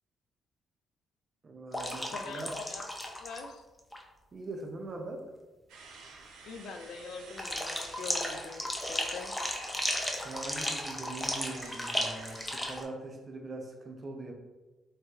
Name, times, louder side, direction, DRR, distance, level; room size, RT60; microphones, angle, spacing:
voice 1, 1.4-2.5 4.3-5.3 10.2-14.3, right 2 dB, 40° right, 3 dB, 0.5 m, -42 dB
sound 1, 1.7-3.5 3.8-4.0 7.4-12.8, left 1 dB, 10° left, 0.5 m, -35 dB
voice 2, 2.1-2.8 3.2-3.6 6.4-9.3, left 5 dB, 75° left, 6 dB, 0.3 m, -43 dB
sound 2, 5.7-12.8, right 3 dB, 90° right, 0.5 m, -51 dB
3.0 x 2.9 x 2.3 m, 1.2 s
cardioid pair, 90°, 0 cm